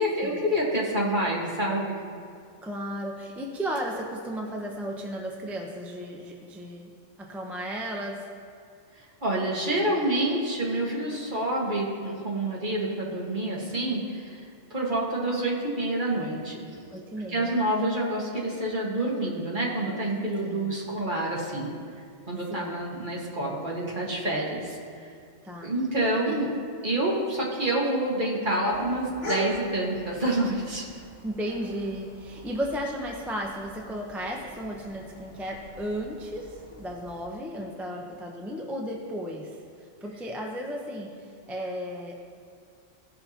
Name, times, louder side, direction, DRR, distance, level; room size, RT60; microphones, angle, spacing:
voice 1, 0.0-2.0 8.9-14.4 14.7-16.6 17.3-21.7 22.3-25.1 25.6-26.5 26.8-30.9, right 1 dB, 40° right, -4 dB, 1.6 m, -28 dB
voice 2, 2.6-6.9 7.2-8.3 16.9-17.5 20.4-20.7 22.5-22.8 25.4-25.7 26.3-26.4 31.2-39.6 40.0-42.1, equal, ahead, -1 dB, 0.5 m, -34 dB
sound 1, 28.7-37.3, left 1 dB, 50° left, 1.9 m, -42 dB
16.0 x 5.6 x 2.8 m, 2.2 s
omnidirectional pair, 1.3 m